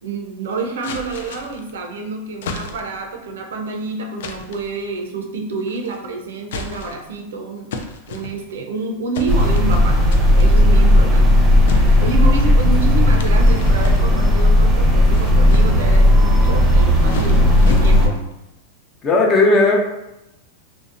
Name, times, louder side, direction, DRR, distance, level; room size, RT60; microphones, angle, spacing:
voice 1, 0.0-7.7 8.1-11.5 12.0-18.2, right 3 dB, 80° right, 2 dB, 0.5 m, -28 dB
sound 1, 0.8-1.7 2.4-3.1 4.2-4.7 5.7-6.1 6.4-7.2 7.7-8.7 9.1-9.8 10.1-10.5 11.7-12.5 13.1-14.4 14.9-16.0 16.7-18.3, left 4 dB, 75° left, 0.3 m, -32 dB
sound 2, 9.3-18.1, left 1 dB, 15° right, 0.6 m, -14 dB
voice 2, 19.0-19.8, left 2 dB, 30° left, 0 dB, 0.6 m, -14 dB
2.7 x 2.0 x 2.5 m, 0.91 s
hypercardioid pair, 120°, 0 cm